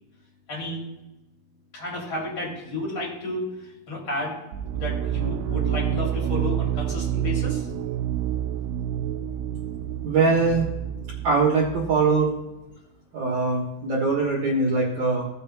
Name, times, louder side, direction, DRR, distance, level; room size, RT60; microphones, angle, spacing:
voice 1, 0.5-0.8 1.7-3.5 3.9-4.4 4.7-7.7, left 2 dB, 40° left, -5 dB, 3.5 m, -31 dB
sound 1, 4.5-12.2, right 10 dB, 85° right, 2.5 m, -28 dB
voice 2, 10.0-10.7 11.2-12.3 13.1-15.3, right 4 dB, 60° right, -3 dB, 2.1 m, -22 dB
16.5 x 6.8 x 2.3 m, 0.97 s
omnidirectional pair, 4.5 m